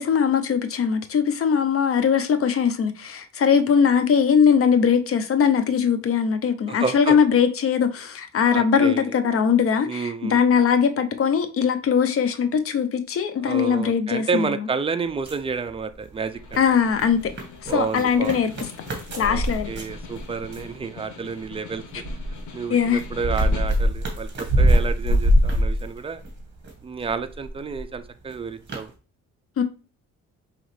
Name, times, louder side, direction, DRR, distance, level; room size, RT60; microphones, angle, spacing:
voice 1, 0.0-14.5 16.6-17.3 17.6-18.5 19.2-19.7 22.7-23.0 29.6-29.7, left 7 dB, 50° left, 0.7 m, -20 dB
voice 2, 6.7-7.2 8.5-9.1 9.8-10.4 13.4-16.6 17.7-18.4 19.1-19.4 19.7-22.0 22.5-26.2 26.8-28.9, right 5 dB, 20° right, 0.4 m, -30 dB
sound 1, 15.1-16.1 16.4-20.8 21.4-26.7 27.0-27.9 28.3-28.4 28.7-28.8, equal, 35° right, 1.5 m, -23 dB
Snare drum, 16.2-24.1, left 6 dB, 75° left, 1.0 m, -43 dB
4.9 x 3.1 x 3.2 m
cardioid pair, 90°, 30 cm